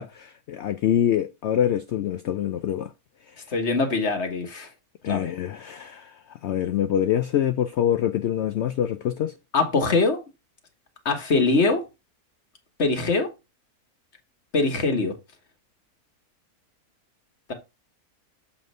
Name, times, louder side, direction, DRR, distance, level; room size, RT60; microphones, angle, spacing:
voice 1, 0.0-2.9 5.0-6.2 6.4-9.3, left 10 dB, 70° left, 0.6 m, -25 dB
voice 2, 3.5-4.7 5.0-5.3 9.5-10.2 11.0-11.8 12.8-13.3 14.5-15.1, left 3 dB, 50° left, 1.6 m, -22 dB
7.1 x 3.1 x 5.4 m
omnidirectional pair, 1.6 m